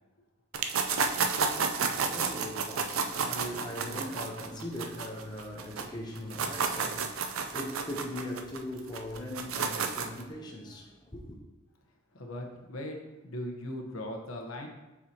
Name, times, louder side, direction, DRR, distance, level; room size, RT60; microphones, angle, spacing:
sound 1, 0.5-5.8 6.2-10.2, right 5 dB, 85° right, 0.5 m, -31 dB
voice 1, 1.6-11.4, left 1 dB, 20° left, 0.7 m, -40 dB
voice 2, 12.1-14.7, left 1 dB, 85° left, 1.1 m, -39 dB
7.0 x 4.9 x 2.9 m
head